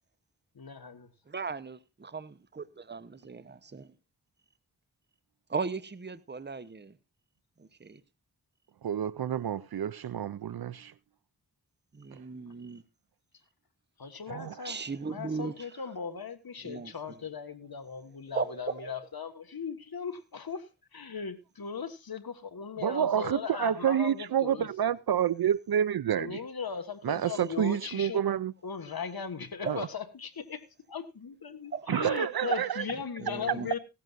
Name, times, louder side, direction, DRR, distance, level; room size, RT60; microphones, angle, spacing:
voice 1, 0.6-1.1 14.0-24.9 26.2-28.2 28.6-33.8, left 6 dB, 65° left, 1.7 m, -38 dB
voice 2, 1.3-3.9 5.5-6.9 7.6-8.0 11.9-12.8 14.6-15.7 16.6-16.9 18.3-18.9 29.7-29.8 31.7-31.9 33.2-33.7, right 4 dB, 25° right, 0.9 m, -37 dB
voice 3, 8.8-10.9 14.3-14.5 22.8-26.4 27.0-28.5 29.6-29.9 31.9-32.8, right 9 dB, 70° right, 0.6 m, -28 dB
17.0 x 14.0 x 2.6 m
wide cardioid pair, 65°, 38 cm